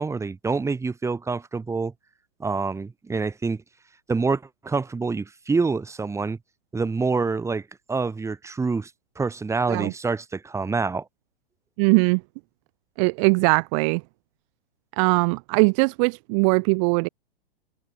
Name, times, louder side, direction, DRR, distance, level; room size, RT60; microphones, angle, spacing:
voice 1, 0.0-1.9 2.4-3.6 4.1-6.4 6.7-8.9 9.2-11.0, right 4 dB, 10° right, 3.1 m, -26 dB
voice 2, 11.8-12.2 13.0-14.0 15.0-17.1, right 33 dB, 35° right, 0.5 m, -20 dB
hypercardioid pair, 120°, 29 cm